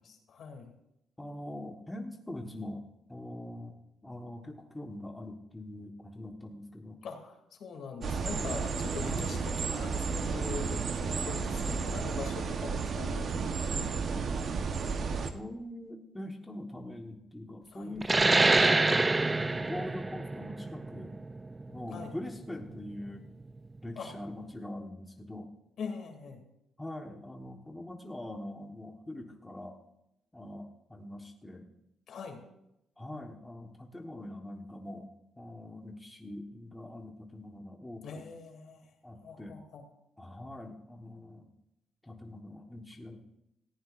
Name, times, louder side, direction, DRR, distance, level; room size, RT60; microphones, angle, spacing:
voice 1, 0.3-0.8 7.0-14.0 17.7-17.9 21.9-22.1 24.0-24.1 25.8-26.4 32.1-32.4 38.0-38.9 39.2-39.8, left 5 dB, 65° left, 3 dB, 2.6 m, -42 dB
voice 2, 1.2-3.8 4.0-7.0 9.0-9.3 15.3-21.2 21.7-23.3 23.8-25.5 26.8-29.8 30.3-31.7 33.0-38.3 39.0-39.6 40.2-41.5 42.0-43.4, left 1 dB, 10° left, 2 dB, 1.3 m, -43 dB
sound 1, 8.0-15.3, right 5 dB, 55° right, 1.0 m, -32 dB
sound 2, 18.0-23.2, right 3 dB, 20° right, 0.4 m, -27 dB
18.0 x 15.0 x 2.5 m, 0.86 s
cardioid pair, 90°, 0 cm